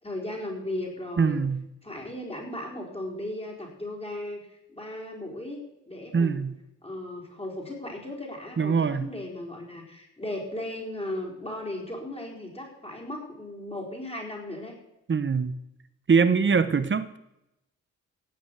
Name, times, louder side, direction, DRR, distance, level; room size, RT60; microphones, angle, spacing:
voice 1, 0.0-1.4 1.8-5.6 5.9-6.5 6.8-14.8, left 1 dB, 20° left, -1 dB, 4.3 m, -36 dB
voice 2, 1.2-1.6 6.1-6.6 8.6-9.1 15.1-15.6 16.1-17.2, right 5 dB, 40° right, 13 dB, 1.0 m, -23 dB
16.5 x 6.0 x 8.3 m, 0.88 s
cardioid pair, 85°, 29 cm